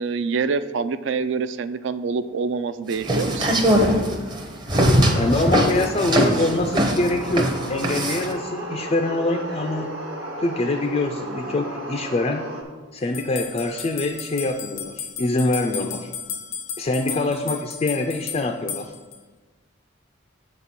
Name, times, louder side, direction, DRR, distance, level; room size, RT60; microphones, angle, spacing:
voice 1, 0.0-3.7 17.1-17.5, right 5 dB, 60° right, 13 dB, 0.3 m, -26 dB
sound 1, 2.9-8.3, equal, 20° right, 0.6 m, -20 dB
sound 2, 4.7-12.6, right 1 dB, 75° right, 1.2 m, -33 dB
voice 2, 5.1-10.0 10.4-12.5 12.9-16.1 16.8-18.9, left 2 dB, 30° left, 5 dB, 0.3 m, -24 dB
sound 3, 13.1-19.2, left 7 dB, 75° left, 0.6 m, -34 dB
7.0 x 4.1 x 6.0 m, 1.3 s
head